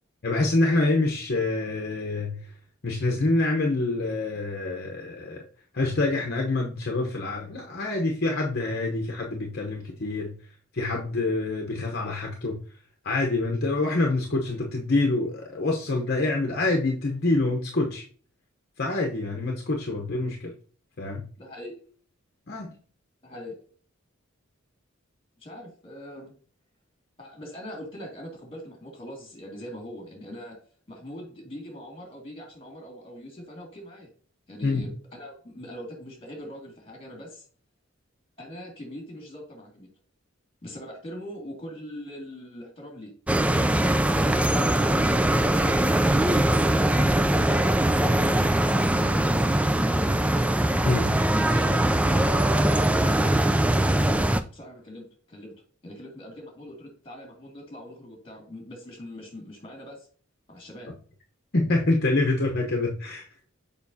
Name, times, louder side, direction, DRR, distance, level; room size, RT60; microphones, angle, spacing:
voice 1, 0.2-2.4 2.8-5.4 5.7-10.3 10.7-12.6 13.0-18.0 18.8-20.5 21.0-21.2 22.5-22.7 34.6-34.8 50.8-51.1 61.5-63.3, left 2 dB, 50° left, 1 dB, 0.9 m, -26 dB
voice 2, 21.4-21.8 23.2-23.6 25.4-26.4 27.2-30.6 30.9-34.1 34.5-37.5 38.4-39.9 40.6-43.1 48.4-49.5 51.4-60.1 60.5-60.9, equal, 30° left, 2 dB, 2.2 m, -41 dB
sound 1, 43.3-54.4, right 1 dB, 5° right, 0.3 m, -22 dB
6.9 x 5.3 x 2.7 m, 0.41 s
head